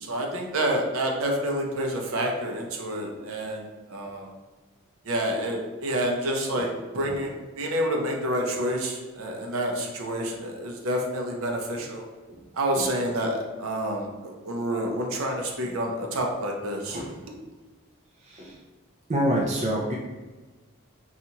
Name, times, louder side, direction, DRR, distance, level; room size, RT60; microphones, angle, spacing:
voice 1, 0.0-4.3 5.1-6.7 6.9-12.0 12.5-17.0, right 1 dB, 75° right, 1 dB, 0.7 m, -28 dB
voice 2, 16.9-17.4 18.2-18.5 19.1-20.0, equal, 30° right, -2 dB, 0.4 m, -28 dB
4.2 x 2.4 x 2.8 m, 1.3 s
head